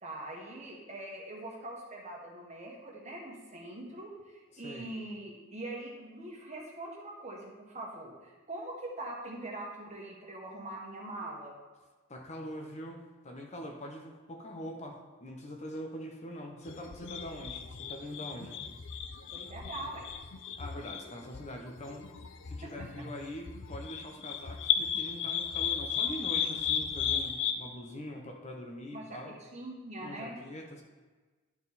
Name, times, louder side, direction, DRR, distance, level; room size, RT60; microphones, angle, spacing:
voice 1, 0.0-11.5 19.3-20.1 22.6-22.7 28.9-29.0 29.4-30.4, right 1 dB, 35° right, -1 dB, 1.5 m, -42 dB
voice 2, 12.1-18.6 20.6-22.1 22.4-29.4 30.0-30.8, equal, 35° left, 2 dB, 0.9 m, -43 dB
sound 1, 16.6-27.5, left 8 dB, 60° left, 0.6 m, -35 dB
11.5 x 4.7 x 4.1 m, 1.3 s
head